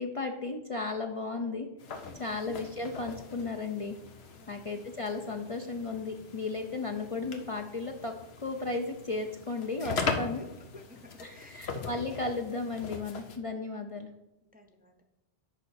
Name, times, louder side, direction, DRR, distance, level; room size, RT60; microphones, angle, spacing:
voice 1, 0.0-1.7 2.2-4.0 4.5-8.1 8.4-10.5 11.2-14.1, left 3 dB, 40° left, 3 dB, 0.6 m, -35 dB
sound 1, 1.8-13.4, left 4 dB, 80° left, 1.2 m, -40 dB
voice 2, 1.9-2.2 4.4-4.6 9.8-10.5 10.7-11.7 14.5-15.0, left 2 dB, 10° right, 4 dB, 0.6 m, -54 dB
6.6 x 5.3 x 6.5 m, 0.96 s
omnidirectional pair, 1.0 m